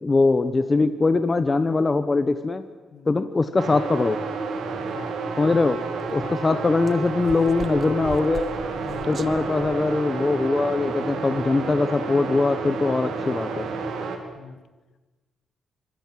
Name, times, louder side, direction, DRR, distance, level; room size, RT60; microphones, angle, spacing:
voice 1, 0.0-2.6 3.1-4.2 5.4-5.8 6.1-8.5 9.1-13.7, left 3 dB, 25° left, 10 dB, 1.2 m, -22 dB
sound 1, 3.6-14.2, right 4 dB, 85° right, 4.0 m, -30 dB
sound 2, 5.4-10.3, right 5 dB, 40° right, 1.3 m, -41 dB
voice 2, 8.7-9.1 14.3-14.6, left 6 dB, 65° left, 10 dB, 2.2 m, -42 dB
26.5 x 25.5 x 7.6 m, 1.3 s
cardioid pair, 140°, 0 cm